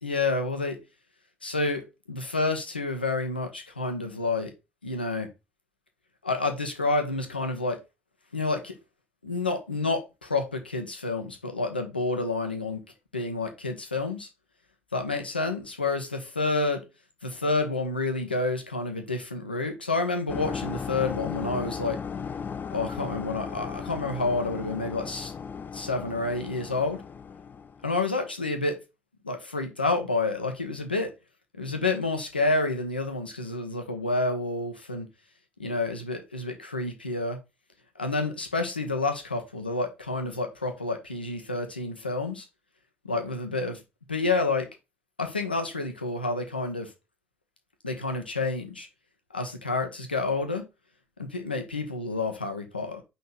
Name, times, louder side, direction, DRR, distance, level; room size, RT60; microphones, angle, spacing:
voice 1, 0.0-0.8 1.4-4.5 4.8-5.3 6.2-7.8 8.3-8.8 9.2-12.8 13.1-14.3 14.9-16.8 17.2-22.0 22.7-25.3 25.7-27.0 27.8-28.8 29.2-31.1 31.6-35.1 35.6-37.4 38.0-42.5 43.1-43.8 44.1-44.7 45.2-46.9 47.8-48.9 49.3-50.6 51.2-53.0, left 3 dB, 85° left, 0.9 m, -29 dB
sound 1, 20.3-27.9, left 6 dB, 35° left, 0.5 m, -36 dB
5.2 x 4.1 x 6.0 m
figure-of-eight pair, 45°, 5 cm